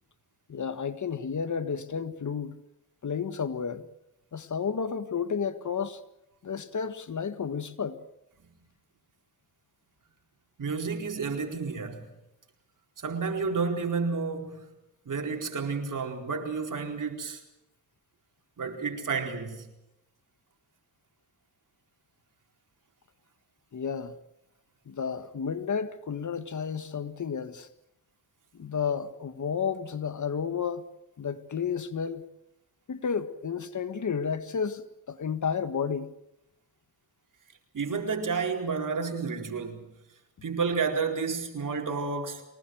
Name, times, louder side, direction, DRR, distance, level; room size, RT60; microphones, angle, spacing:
voice 1, 0.5-2.5 3.0-3.9 4.3-6.0 6.4-8.0 23.7-24.2 24.9-27.7 28.5-30.9 31.2-32.2 32.9-36.1, left 6 dB, 55° left, 1.6 m, -32 dB
voice 2, 10.6-12.1 13.0-14.7 15.0-17.4 18.6-19.7 37.7-39.9 40.4-42.4, right 5 dB, 55° right, 4.4 m, -31 dB
24.0 x 19.5 x 7.9 m
cardioid pair, 60°, 36 cm